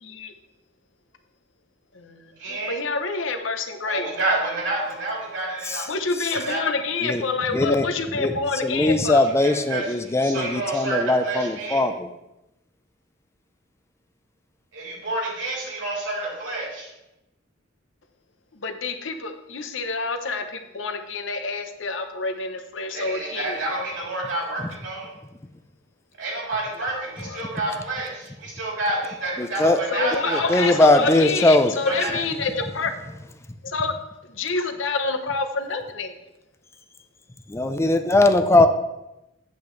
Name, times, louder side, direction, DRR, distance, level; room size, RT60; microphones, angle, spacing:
voice 1, 0.0-0.3 1.9-2.2 2.5-4.1 5.9-9.3 18.5-23.6 26.8-27.6 29.9-32.9 33.6-33.9 34.3-36.2, left 4 dB, 85° left, 8 dB, 0.9 m, -28 dB
voice 2, 2.4-2.8 3.8-5.8 6.3-6.6 9.4-11.8 14.7-16.9 22.9-25.1 26.2-31.2 31.9-32.1, right 2 dB, 80° right, -4 dB, 3.4 m, -29 dB
voice 3, 7.5-7.9 8.2-8.3 8.6-12.1 29.4-29.8 30.3-31.7 37.5-38.7, left 2 dB, 15° left, 8 dB, 0.4 m, -20 dB
8.4 x 8.3 x 3.2 m, 0.92 s
head